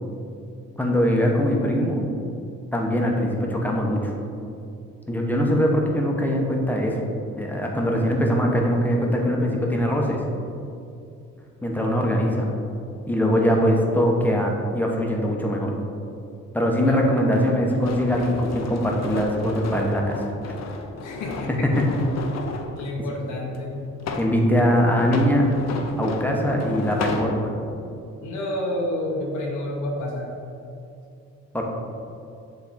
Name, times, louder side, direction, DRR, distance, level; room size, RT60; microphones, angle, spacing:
voice 1, 0.8-2.1 2.7-4.1 5.1-7.0 7.4-10.2 11.6-12.5 13.1-15.7 16.5-20.2 21.5-21.9 24.2-25.5 26.0-27.5 31.5-31.6, equal, 5° left, -1 dB, 1.0 m, -22 dB
voice 2, 16.9-17.6 21.0-21.7 22.7-23.8 28.2-30.3, left 1 dB, 80° left, -2 dB, 1.0 m, -29 dB
sound 1, 17.7-22.7 23.5-24.4 25.0-27.3, left 4 dB, 60° left, 0.7 m, -33 dB
7.5 x 3.4 x 4.2 m, 2.6 s
cardioid pair, 90°, 30 cm